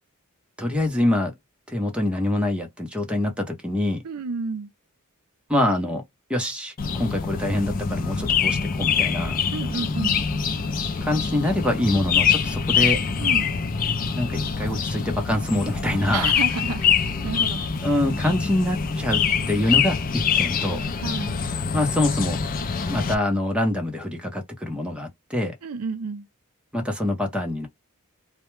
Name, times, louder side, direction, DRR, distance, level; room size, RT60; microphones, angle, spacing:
voice 1, 0.6-1.3 1.7-4.0 5.5-6.0 6.3-9.4 11.0-13.0 14.1-16.3 17.8-20.8 21.7-22.4 22.8-25.6 26.7-27.7, left 1 dB, 5° right, 0.6 m, -25 dB
voice 2, 4.0-4.7 9.5-10.3 13.2-13.5 16.1-17.6 21.0-21.4 25.6-26.3, right 4 dB, 80° right, 0.5 m, -31 dB
sound 1, 6.8-23.2, left 6 dB, 40° left, 0.4 m, -24 dB
2.2 x 2.1 x 3.0 m
head